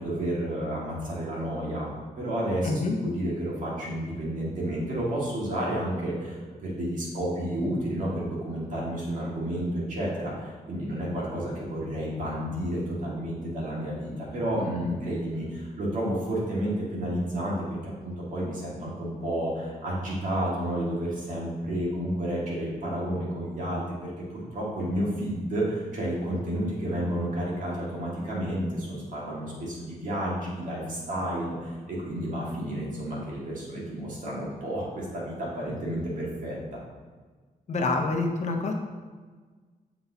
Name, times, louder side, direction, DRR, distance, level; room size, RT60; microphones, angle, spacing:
voice 1, 0.0-1.9 2.2-17.6 17.8-36.6, right 1 dB, 60° right, -5 dB, 1.8 m, -31 dB
voice 2, 2.6-3.0 37.7-38.7, left 3 dB, 50° left, 3 dB, 0.7 m, -26 dB
6.9 x 5.9 x 2.8 m, 1.4 s
wide cardioid pair, 180°, 15 cm